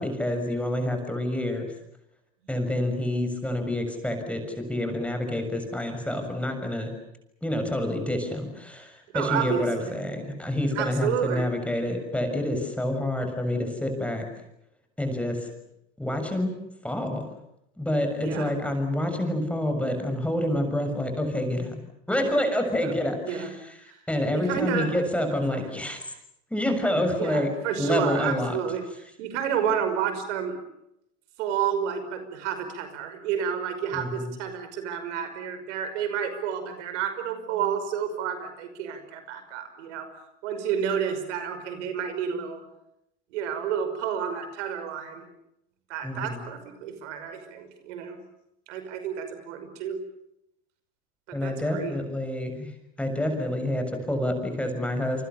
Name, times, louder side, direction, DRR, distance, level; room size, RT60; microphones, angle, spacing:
voice 1, 0.0-1.7 2.5-6.9 7.4-14.3 15.0-15.5 16.0-16.5 16.8-17.2 17.8-21.7 22.1-23.7 24.1-26.0 26.5-27.5 27.8-28.6 33.9-34.3 46.0-46.4 51.3-52.7 53.0-55.3, left 1 dB, 5° left, 5 dB, 6.7 m, -28 dB
voice 2, 9.1-10.0 10.7-11.5 18.2-18.5 22.7-22.9 23.2-23.5 23.9-24.0 24.3-24.9 25.5-25.6 27.2-28.8 29.2-30.6 31.4-40.1 40.4-42.6 43.3-45.3 45.9-48.2 48.7-50.0 51.3-51.9, right 8 dB, 75° right, 9 dB, 5.7 m, -30 dB
28.5 x 25.0 x 7.0 m, 0.80 s
supercardioid pair, 110°, 36 cm